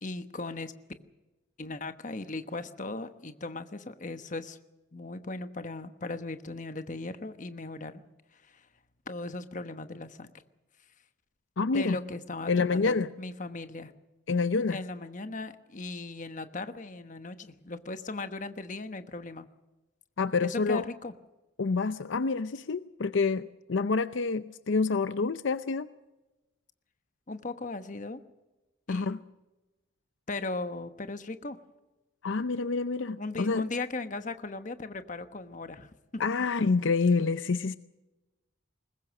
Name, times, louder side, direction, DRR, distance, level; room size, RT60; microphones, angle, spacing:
voice 1, 0.0-0.7 1.6-4.6 4.9-8.0 8.3-8.7 9.1-10.3 11.7-13.9 14.7-19.5 20.4-21.1 27.3-28.2 28.9-29.2 30.3-31.6 33.2-36.3, left 3 dB, 40° left, 9 dB, 1.2 m, -38 dB
voice 2, 11.6-12.0 12.5-13.1 14.3-14.8 20.2-20.8 21.6-25.9 28.9-29.2 32.2-33.6 36.2-37.8, left 4 dB, 75° left, 13 dB, 0.6 m, -27 dB
22.0 x 20.0 x 6.5 m, 1.1 s
head